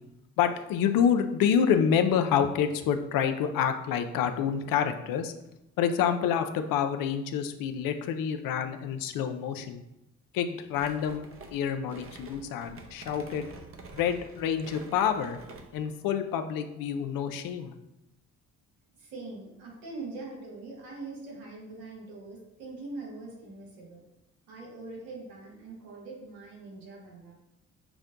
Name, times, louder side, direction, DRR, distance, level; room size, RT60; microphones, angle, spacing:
voice 1, 0.4-5.3 5.8-9.8 10.3-13.5 13.9-15.4 15.7-17.7, left 8 dB, 75° left, 8 dB, 0.5 m, -27 dB
sound 1, 10.7-15.9, right 3 dB, 40° right, 0.7 m, -48 dB
voice 2, 18.9-24.0 24.5-27.3, right 3 dB, 85° right, -3 dB, 1.4 m, -43 dB
5.9 x 2.2 x 3.8 m, 0.88 s
supercardioid pair, 60°, 34 cm